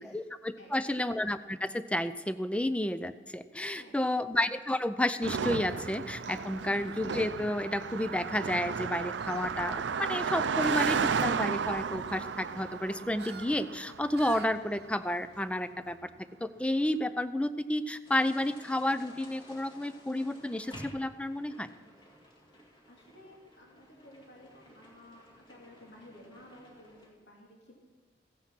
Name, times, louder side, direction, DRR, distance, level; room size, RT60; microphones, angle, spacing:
voice 1, 0.0-16.1 16.4-21.7, left 1 dB, 5° left, 12 dB, 0.4 m, -31 dB
voice 2, 0.6-0.9 3.7-4.2 6.5-6.7 22.9-27.8, left 1 dB, 75° left, -3 dB, 3.3 m, -54 dB
Car passing by, 5.2-14.8, right 6 dB, 85° right, 0.5 m, -33 dB
sound 1, 6.2-15.7, right 6 dB, 60° right, 0.8 m, -50 dB
sound 2, 18.0-27.1, left 1 dB, 25° left, 2.0 m, -54 dB
15.5 x 10.0 x 5.9 m, 1.5 s
head